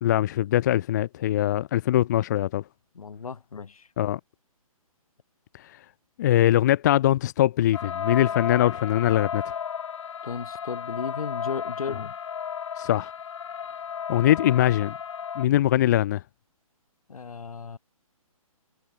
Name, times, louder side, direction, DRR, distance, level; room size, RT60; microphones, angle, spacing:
voice 1, 0.0-2.6 4.0-4.2 6.2-9.5 12.8-13.1 14.1-14.9 15.4-16.2, left 13 dB, 30° left, 1.0 m, -22 dB
voice 2, 2.9-3.9 10.2-12.2 17.1-17.8, left 5 dB, 75° left, 6.0 m, -35 dB
sound 1, 7.7-15.5, left 7 dB, 55° left, 3.0 m, -34 dB
hypercardioid pair, 160°, 19 cm